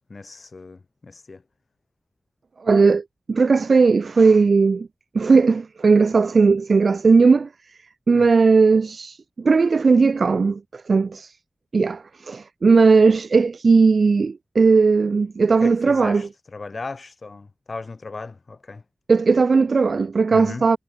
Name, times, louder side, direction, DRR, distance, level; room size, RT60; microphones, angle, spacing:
voice 1, 0.1-1.4 8.1-8.3 15.6-18.8 20.3-20.6, left 3 dB, 60° left, 5.1 m, -36 dB
voice 2, 2.6-4.9 5.1-7.5 8.1-11.4 11.7-16.3 19.1-20.8, right 4 dB, 75° right, 0.9 m, -17 dB
wide cardioid pair, 85°, 0 cm